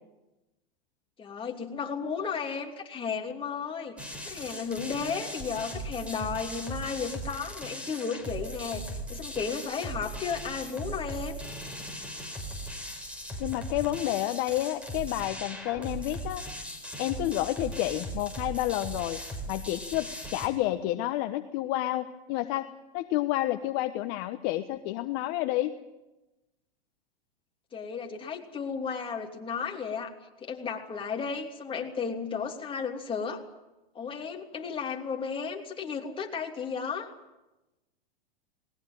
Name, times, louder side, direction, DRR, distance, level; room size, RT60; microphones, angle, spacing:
voice 1, 1.2-11.4 27.7-30.1 30.4-33.4 33.9-37.1, left 6 dB, 15° left, 1 dB, 3.1 m, -34 dB
sound 1, 4.0-20.5, equal, 5° right, 4.1 m, -39 dB
voice 2, 13.4-16.4 17.0-19.2 19.5-22.7 22.9-25.8, left 15 dB, 45° left, 8 dB, 1.2 m, -30 dB
20.0 x 19.5 x 9.2 m, 1.0 s
hypercardioid pair, 120°, 31 cm